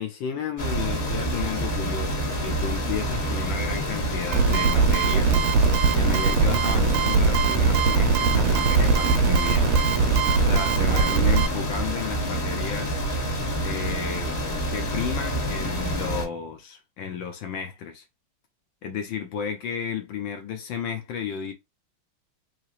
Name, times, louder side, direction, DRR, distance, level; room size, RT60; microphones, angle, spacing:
voice 1, 0.0-5.4 5.9-9.8 10.4-13.0 13.6-14.3 14.7-18.0 18.8-21.5, left 7 dB, 75° left, 1.2 m, -33 dB
sound 1, 0.6-16.3, right 1 dB, 35° left, 1.5 m, -28 dB
sound 2, 4.3-11.5, right 5 dB, 85° right, 1.5 m, -21 dB
3.8 x 3.3 x 2.4 m
omnidirectional pair, 2.4 m